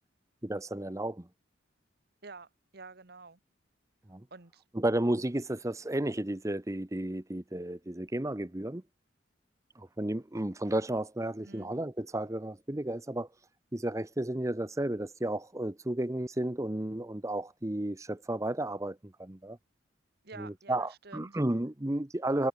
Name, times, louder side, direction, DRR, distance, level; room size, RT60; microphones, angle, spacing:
voice 1, 0.4-1.3 4.1-4.2 4.7-8.8 9.8-13.3 13.7-19.6 20.4-22.5, right 1 dB, 15° right, 0.8 m, -33 dB
voice 2, 2.2-3.4 4.3-4.6 11.4-11.7 20.2-21.4, right 4 dB, 55° right, 1.3 m, -49 dB
head